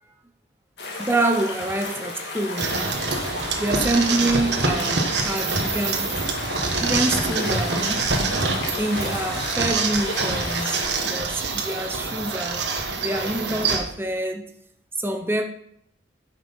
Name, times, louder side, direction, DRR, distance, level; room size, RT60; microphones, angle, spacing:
sound 1, 0.8-10.9, left 2 dB, 65° left, 2.2 m, -33 dB
voice 1, 1.0-2.8 3.6-6.2 6.7-8.1 8.8-14.5 15.0-15.4, right 1 dB, 15° right, 0.9 m, -26 dB
sound 2, 2.6-13.8, right 3 dB, 65° right, 1.4 m, -25 dB
9.4 x 6.3 x 5.6 m
head